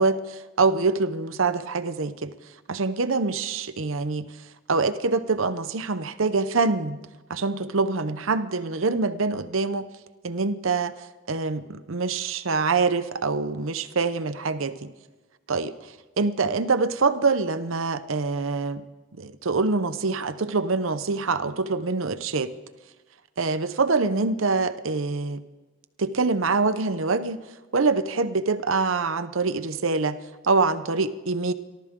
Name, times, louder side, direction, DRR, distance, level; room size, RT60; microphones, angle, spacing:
voice 1, 0.0-2.3 2.7-4.3 4.7-7.0 7.3-9.9 10.2-10.9 11.3-14.9 15.5-15.7 16.2-18.8 19.2-22.5 23.4-25.4 26.0-27.4 27.7-30.2 30.4-31.5, right 4 dB, 80° right, 11 dB, 0.8 m, -25 dB
29.0 x 12.5 x 3.7 m, 1.2 s
head